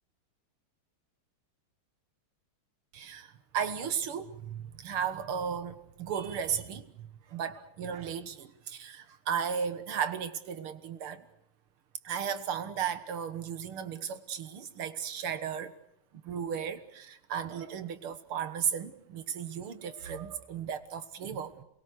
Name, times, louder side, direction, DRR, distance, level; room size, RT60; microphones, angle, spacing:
voice 1, 2.9-11.3 12.0-15.7 16.2-21.6, right 7 dB, 85° right, 11 dB, 2.3 m, -35 dB
28.0 x 21.5 x 6.5 m, 0.78 s
omnidirectional pair, 2.3 m